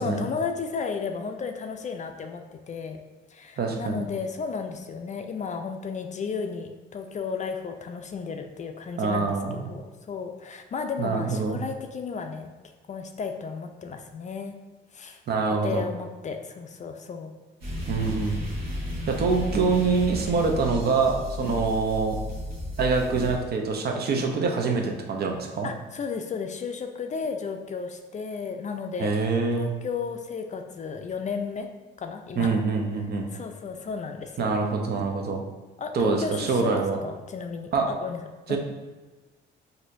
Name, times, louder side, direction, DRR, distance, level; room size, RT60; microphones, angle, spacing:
voice 1, 0.0-3.0 3.3-9.4 9.6-12.5 12.9-14.6 14.9-15.2 15.6-17.3 21.4-21.6 25.6-29.1 29.5-31.7 32.0-32.6 33.3-34.5 35.8-38.6, left 5 dB, 35° left, 5 dB, 0.4 m, -34 dB
voice 2, 3.6-4.0 9.0-9.6 11.0-11.6 15.3-15.8 17.9-18.4 19.1-22.2 22.8-25.7 29.0-29.7 32.4-33.3 34.4-35.4 35.9-37.0 37.7-37.9 38.5-38.6, right 4 dB, 55° right, 2 dB, 0.6 m, -25 dB
sound 1, 17.6-23.4, left 1 dB, 80° right, 1.1 m, -33 dB
4.2 x 2.6 x 2.6 m, 1.2 s
cardioid pair, 90°, 20 cm